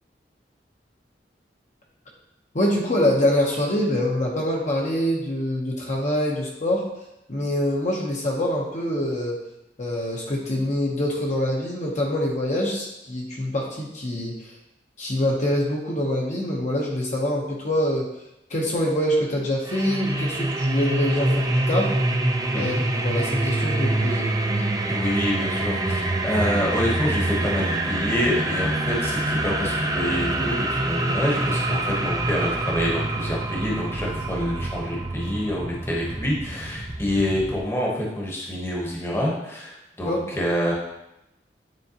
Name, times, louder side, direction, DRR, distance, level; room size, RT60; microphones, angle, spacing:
voice 1, 2.5-6.8 7.3-9.4 9.8-14.3 15.0-18.1 18.5-21.9 22.5-24.3 40.1-40.2, left 1 dB, 45° left, -2 dB, 0.9 m, -25 dB
sound 1, 19.7-37.6, right 2 dB, 20° right, 0.5 m, -26 dB
voice 2, 22.5-22.8 24.9-40.7, equal, 15° left, -3 dB, 1.1 m, -27 dB
9.4 x 3.5 x 2.9 m, 0.89 s
head